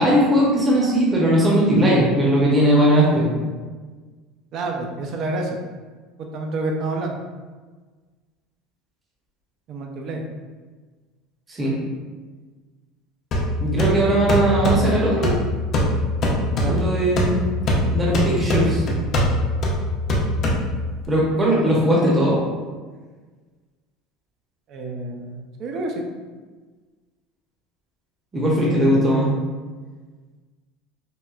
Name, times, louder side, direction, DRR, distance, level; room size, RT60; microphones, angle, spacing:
voice 1, 0.0-3.3 11.5-11.7 13.6-15.3 16.6-17.5 17.8-18.8 21.1-22.4 28.3-29.3, right 1 dB, 20° right, -4 dB, 0.7 m, -19 dB
voice 2, 4.5-5.6 6.2-7.2 9.7-10.2 16.6-16.8 24.7-26.0, right 2 dB, 50° right, 2 dB, 0.4 m, -28 dB
sound 1, 13.3-21.0, left 1 dB, 40° left, 0.6 m, -22 dB
4.3 x 2.1 x 2.3 m, 1.4 s
supercardioid pair, 125°, 0 cm